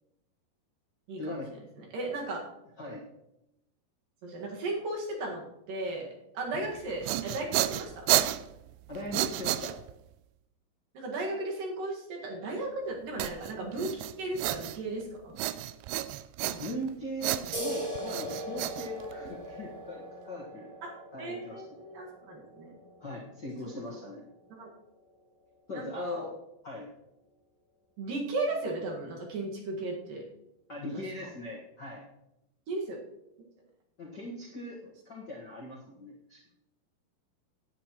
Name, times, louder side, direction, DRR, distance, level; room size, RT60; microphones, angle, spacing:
voice 1, 1.2-1.5 2.8-3.0 6.5-6.7 8.9-9.8 16.4-20.7 21.1-21.8 23.0-24.2 25.7-26.3 26.6-26.9 30.7-32.0 34.0-34.8 35.0-36.4, left 1 dB, 50° left, -4 dB, 1.3 m, -40 dB
voice 2, 1.8-2.5 4.2-8.3 10.9-15.4 19.2-19.3 20.8-22.8 24.6-24.7 25.7-26.3 28.0-30.3 30.9-31.0 32.7-33.0, right 2 dB, 65° right, -1 dB, 3.4 m, -36 dB
sound 1, 6.7-10.1 13.2-15.0 15.4-16.9 17.2-19.5, right 15 dB, 85° right, 2.5 m, -31 dB
sound 2, 17.5-24.7, equal, 30° right, 5.5 m, -41 dB
18.0 x 9.8 x 3.1 m, 0.88 s
omnidirectional pair, 4.5 m